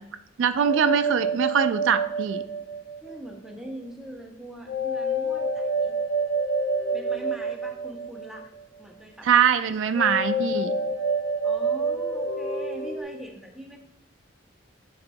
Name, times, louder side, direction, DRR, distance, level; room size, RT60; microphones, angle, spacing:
voice 1, 0.4-2.4 9.2-10.7, right 7 dB, 85° right, 11 dB, 0.4 m, -22 dB
sound 1, 0.6-3.3 4.7-8.6 9.9-13.0, right 2 dB, 85° left, 0.9 m, -28 dB
voice 2, 3.0-6.0 6.9-8.5 8.8-10.0 11.4-13.8, equal, 5° right, 0 dB, 0.8 m, -42 dB
10.0 x 4.2 x 2.3 m, 0.91 s
head